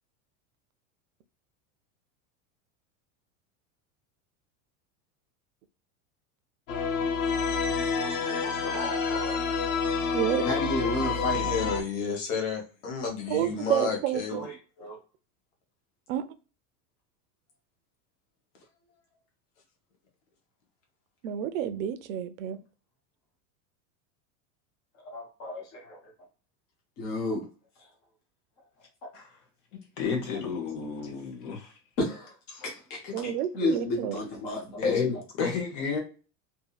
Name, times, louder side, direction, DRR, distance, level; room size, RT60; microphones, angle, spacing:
sound 1, 6.7-11.8, left 5 dB, 90° left, 0.9 m, -28 dB
voice 1, 8.0-9.4 10.4-11.5 14.3-14.5 14.8-15.0 25.1-26.0 27.0-27.4 32.0-32.3 32.9-35.1, left 2 dB, 20° left, 0.3 m, -32 dB
voice 2, 10.1-10.5 13.3-14.4 16.1-16.3 21.2-22.6 33.1-34.2, right 11 dB, 85° right, 0.5 m, -29 dB
voice 3, 11.3-14.5, left 5 dB, 65° left, 1.3 m, -31 dB
voice 4, 30.0-31.7 32.5-32.7 34.8-36.0, left 5 dB, 40° left, 0.9 m, -30 dB
2.7 x 2.6 x 2.3 m
supercardioid pair, 175°, 39 cm